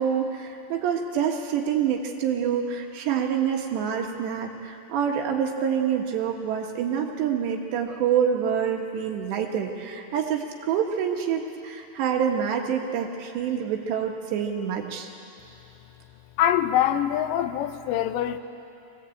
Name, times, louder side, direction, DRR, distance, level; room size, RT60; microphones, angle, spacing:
voice 1, 0.0-15.1, right 8 dB, 80° right, 2 dB, 3.8 m, -26 dB
voice 2, 16.4-18.4, left 11 dB, 85° left, 9 dB, 3.0 m, -24 dB
24.0 x 18.0 x 8.6 m, 2.7 s
omnidirectional pair, 5.0 m